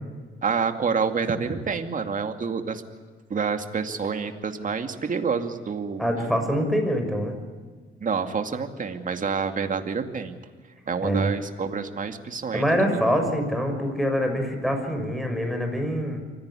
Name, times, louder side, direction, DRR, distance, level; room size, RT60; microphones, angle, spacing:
voice 1, 0.4-2.8 3.3-6.0 8.0-10.3 10.9-12.6 12.9-13.0, right 5 dB, 40° right, 6 dB, 2.4 m, -28 dB
voice 2, 6.0-7.4 11.0-11.3 12.5-16.2, equal, ahead, 5 dB, 6.3 m, -25 dB
24.5 x 16.5 x 9.9 m, 1.5 s
cardioid pair, 90°, 20 cm